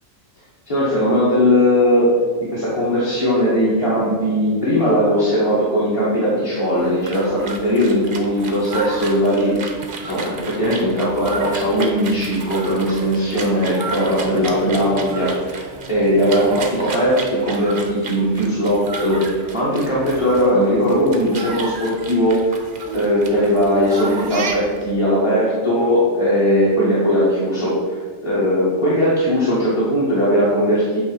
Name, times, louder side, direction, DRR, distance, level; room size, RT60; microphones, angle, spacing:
voice 1, 0.7-2.1 2.5-9.5 10.0-15.6 15.9-22.6 22.9-31.0, equal, 25° left, -10 dB, 1.7 m, -19 dB
sound 1, 6.8-24.9, right 3 dB, 50° right, 0.8 m, -32 dB
8.4 x 3.2 x 4.9 m, 1.5 s
omnidirectional pair, 1.4 m